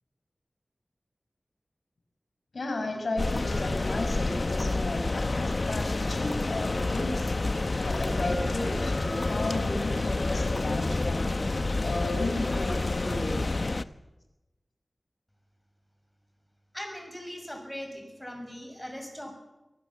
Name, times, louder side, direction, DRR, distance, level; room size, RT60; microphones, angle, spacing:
voice 1, 2.5-7.5 7.8-13.4, left 2 dB, 80° left, 5 dB, 5.8 m, -34 dB
sound 1, 3.2-13.8, left 2 dB, 50° left, 0.9 m, -29 dB
voice 2, 16.7-19.3, equal, 10° left, 4 dB, 6.5 m, -40 dB
23.5 x 19.0 x 7.5 m, 1.0 s
wide cardioid pair, 70°, 0 cm